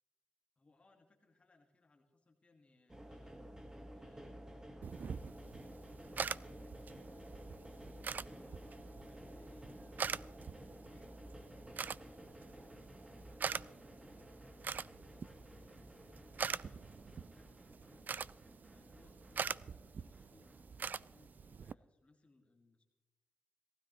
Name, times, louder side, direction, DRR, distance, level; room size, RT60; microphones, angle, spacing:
voice 1, 0.5-3.3 3.9-11.2 11.8-12.9 13.3-14.6 15.0-18.2 18.6-22.8, left 3 dB, 35° left, 2 dB, 1.7 m, -69 dB
sound 1, 2.9-21.3, equal, 15° right, 1.5 m, -53 dB
sound 2, 4.8-21.7, right 6 dB, 50° right, 0.3 m, -44 dB
18.5 x 16.0 x 3.0 m, 1.1 s
cardioid pair, 95°, 4 cm